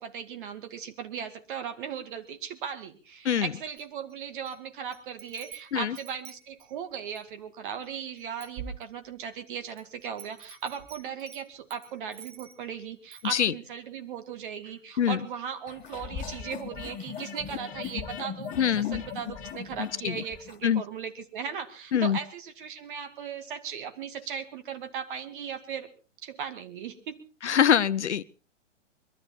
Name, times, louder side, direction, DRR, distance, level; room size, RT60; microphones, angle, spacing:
voice 1, 0.0-25.9 26.2-27.2, right 7 dB, 45° right, 8 dB, 2.3 m, -37 dB
Wind chime, 3.8-4.6 4.9-7.3 7.8-7.9 8.2-9.3 9.8-12.7 13.1-13.3, right 6 dB, 25° right, 2.2 m, -46 dB
sound 1, 15.7-20.6, left 8 dB, 20° left, 2.5 m, -39 dB
voice 2, 18.6-19.0 19.8-20.1 20.6-20.8 21.9-22.2 27.4-28.2, left 8 dB, 65° left, 18 dB, 0.9 m, -24 dB
22.5 x 13.0 x 4.4 m, 0.37 s
figure-of-eight pair, 120°, 37 cm